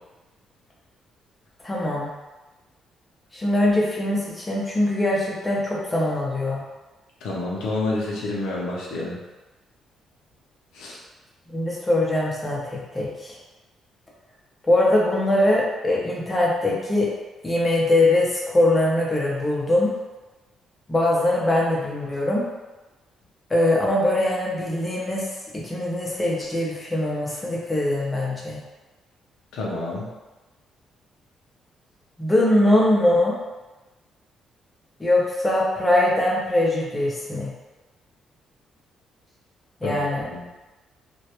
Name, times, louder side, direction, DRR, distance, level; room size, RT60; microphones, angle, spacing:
voice 1, 1.6-2.1 3.3-6.6 11.5-13.3 14.7-17.1 17.4-19.9 20.9-22.4 23.5-25.3 25.6-28.6 32.2-33.4 35.0-37.5 39.8-40.3, left 1 dB, 20° left, -4 dB, 0.6 m, -22 dB
voice 2, 7.2-9.2 10.7-11.0 29.5-30.1 39.8-40.0 40.3-40.4, left 2 dB, 90° left, -4 dB, 0.5 m, -28 dB
2.2 x 2.0 x 2.9 m, 1.1 s
cardioid pair, 90°, 0 cm